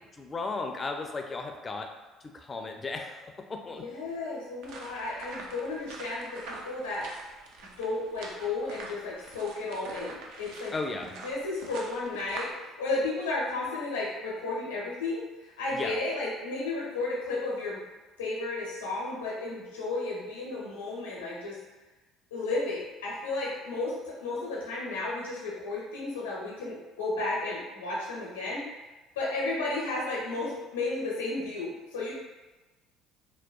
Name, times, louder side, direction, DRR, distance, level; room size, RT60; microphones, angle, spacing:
voice 1, 0.2-1.9 2.2-3.8 10.7-11.1 15.7-16.0, left 3 dB, 30° left, 4 dB, 0.4 m, -35 dB
voice 2, 3.8-7.0 7.8-10.7 11.2-17.8 18.2-21.6 22.3-28.6 29.2-32.2, left 2 dB, 90° left, -6 dB, 0.6 m, -33 dB
sound 1, 4.6-12.5, right 3 dB, 70° right, 0.4 m, -45 dB
2.7 x 2.1 x 2.3 m, 1.2 s
hypercardioid pair, 60°, 0 cm